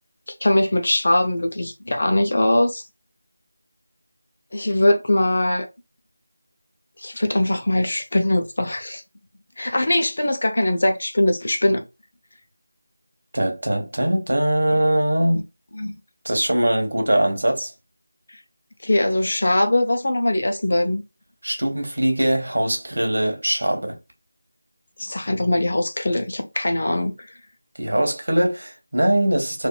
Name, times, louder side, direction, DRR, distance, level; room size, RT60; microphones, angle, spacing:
voice 1, 0.4-2.8 4.5-5.7 7.0-9.0 9.6-11.8 15.8-15.9 18.8-21.0 25.0-27.1, left 1 dB, 45° left, 0.6 m, -21 dB
voice 2, 13.3-15.4 16.2-17.7 21.4-24.0 27.8-29.7, right 1 dB, 90° right, 1.2 m, -21 dB
3.4 x 2.5 x 2.3 m
figure-of-eight pair, 180°, 0 cm